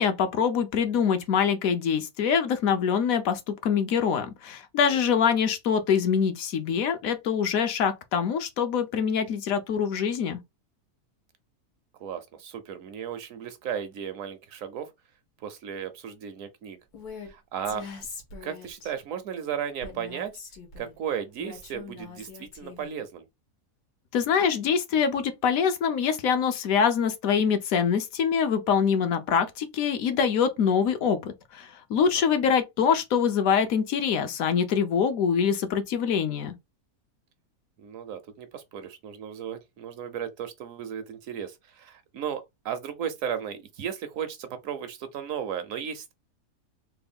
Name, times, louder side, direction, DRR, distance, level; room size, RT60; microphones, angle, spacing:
voice 1, 0.0-10.4 24.1-36.5, left 7 dB, 70° left, 1.0 m, -24 dB
voice 2, 4.9-5.2 12.0-14.9 15.4-16.8 17.3-17.9 18.4-20.3 20.8-23.3 31.9-32.3 37.8-46.1, right 8 dB, 70° right, 0.9 m, -35 dB
Female speech woman speaking, 16.9-17.3 17.6-18.9 19.8-20.9 21.4-23.0, left 5 dB, 90° left, 1.5 m, -42 dB
3.3 x 2.2 x 3.4 m
omnidirectional pair, 1.6 m